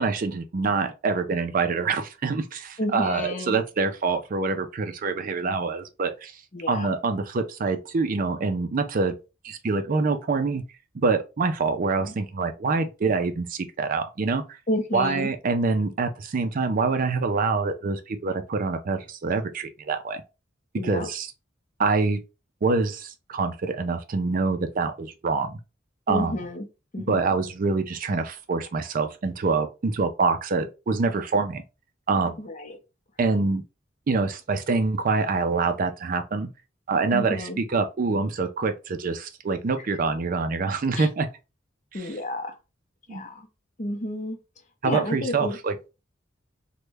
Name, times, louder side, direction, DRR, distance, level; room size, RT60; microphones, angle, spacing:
voice 1, 0.0-6.3 6.7-9.2 9.4-10.6 10.9-14.4 14.9-20.2 20.8-21.3 21.8-22.2 22.6-25.6 26.1-26.3 27.1-31.6 32.1-32.4 33.2-33.6 34.1-36.5 36.9-41.3 43.1-43.2 44.8-45.7, right 4 dB, 45° right, 0.4 m, -25 dB
voice 2, 2.8-3.6 6.5-6.9 12.0-12.1 14.7-15.3 20.8-21.1 26.1-26.7 26.9-27.3 32.4-32.8 37.1-37.6 41.0-41.1 41.9-42.5 43.1-43.5 43.8-44.4 44.8-45.6, left 1 dB, 40° left, 0.6 m, -30 dB
3.1 x 2.2 x 3.3 m
head